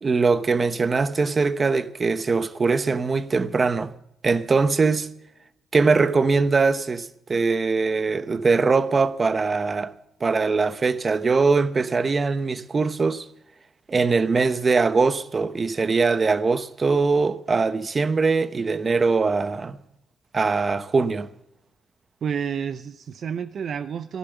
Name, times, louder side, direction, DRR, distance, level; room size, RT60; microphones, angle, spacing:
voice 1, 0.0-3.9 4.2-5.1 5.7-9.9 10.2-13.2 13.9-19.8 20.3-21.3, right 4 dB, 35° right, 0.9 m, -22 dB
voice 2, 22.2-24.2, right 7 dB, 55° right, 0.6 m, -30 dB
15.0 x 11.5 x 6.9 m
cardioid pair, 90°, 0 cm